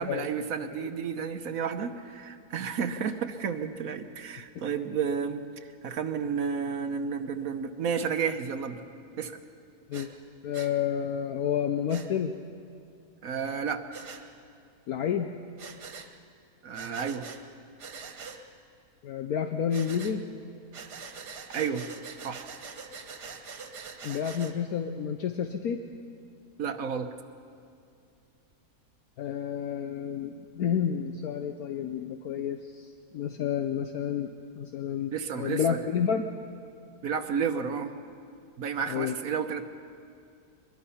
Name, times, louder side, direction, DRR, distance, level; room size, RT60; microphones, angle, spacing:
voice 1, 0.0-5.5 5.8-8.8 9.2-9.4 13.2-13.8 16.6-17.3 21.5-21.8 22.2-22.4 26.6-27.1 35.1-35.8 37.0-37.9 38.6-39.7, right 6 dB, 60° right, 8 dB, 1.3 m, -31 dB
Breathing, 9.9-10.1 10.5-10.7 11.9-12.1 13.9-14.2 15.6-16.1 16.7-17.4 17.8-18.4 19.7-20.2 20.7-24.5, right 5 dB, 80° right, 1.9 m, -43 dB
voice 2, 10.4-12.3 14.9-15.3 19.0-20.3 24.0-25.8 29.2-36.3 38.9-39.1, left 8 dB, 70° left, 6 dB, 1.2 m, -30 dB
23.0 x 22.0 x 5.6 m, 2.5 s
omnidirectional pair, 1.7 m